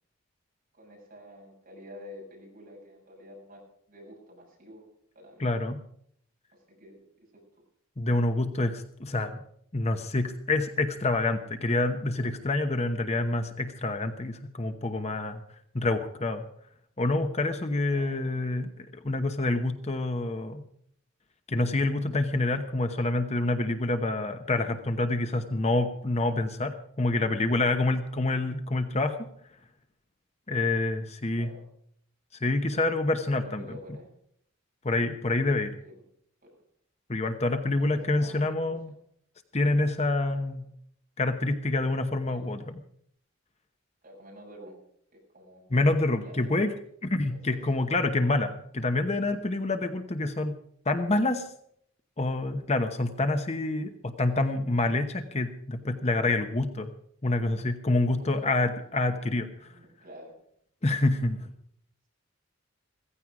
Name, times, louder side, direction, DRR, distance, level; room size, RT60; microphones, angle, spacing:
voice 1, 0.7-3.6 3.9-4.9 5.1-5.5 6.5-7.0 7.3-7.4 17.9-18.2 31.4-31.6 33.3-34.1 35.8-36.0 36.4-36.5 37.6-38.8 42.3-42.6 44.0-44.8 45.1-45.6 46.2-46.6 47.3-47.4 47.8-47.9 51.0-51.1 58.2-58.5 59.6-60.4, equal, 45° right, -1 dB, 7.3 m, -49 dB
voice 2, 5.4-5.8 8.0-9.4 9.7-15.4 15.7-16.4 17.0-20.6 21.5-29.2 30.5-31.5 32.4-33.7 34.8-35.7 37.1-38.9 39.5-40.7 41.2-42.7 45.7-46.7 47.0-50.6 50.8-51.4 52.2-56.9 57.2-59.7 60.8-61.5, left 2 dB, 30° left, 7 dB, 1.0 m, -27 dB
16.0 x 15.5 x 4.9 m, 0.68 s
head